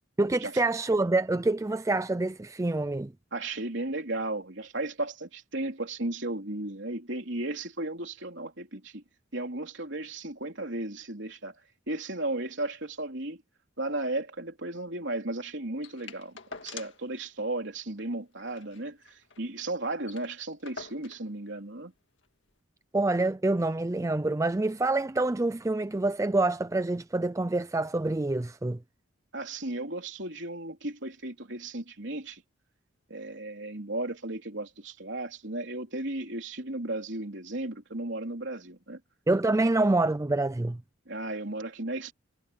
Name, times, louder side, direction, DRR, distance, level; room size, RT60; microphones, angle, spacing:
voice 1, 0.2-3.1 22.9-28.8 39.3-40.8, right 2 dB, 15° right, 0.4 m, -26 dB
voice 2, 3.3-9.0 9.3-11.6 11.9-13.4 13.8-16.4 16.6-21.9 29.3-32.4 33.1-39.0 41.1-42.1, right 2 dB, 60° right, 3.7 m, -35 dB
sound 1, 15.8-17.1 17.4-17.5 17.8-18.0 18.4-19.5 19.8-19.9 20.0-21.3 22.2-22.3, left 5 dB, 60° left, 1.9 m, -46 dB
head